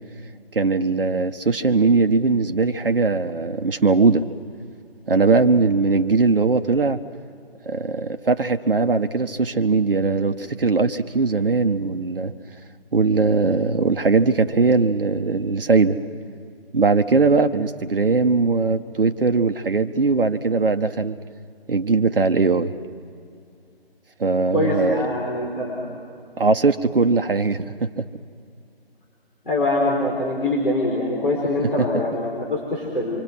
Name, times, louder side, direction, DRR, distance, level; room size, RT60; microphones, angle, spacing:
voice 1, 0.5-4.3 5.1-7.0 7.6-12.3 12.9-16.0 16.7-21.2 21.7-22.8 24.2-25.0 26.4-28.1, right 4 dB, 60° right, 7 dB, 1.1 m, -20 dB
voice 2, 24.5-25.9 29.5-33.2, left 1 dB, 60° left, -2 dB, 5.2 m, -23 dB
26.0 x 25.0 x 6.2 m, 2.4 s
figure-of-eight pair, 150°, 31 cm